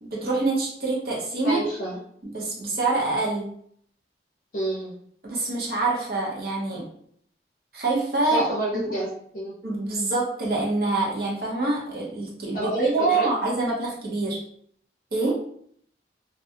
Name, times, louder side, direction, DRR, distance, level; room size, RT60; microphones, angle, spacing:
voice 1, 0.1-1.6 2.2-3.5 5.2-6.9 7.7-8.5 8.7-8.9 9.6-14.4 15.1-15.4, right 2 dB, 55° right, -3 dB, 0.8 m, -25 dB
voice 2, 1.4-2.0 4.5-4.9 8.2-9.1 9.3-9.5 12.5-13.3, right 1 dB, 45° left, -4 dB, 0.5 m, -28 dB
2.4 x 2.2 x 2.7 m, 0.63 s
head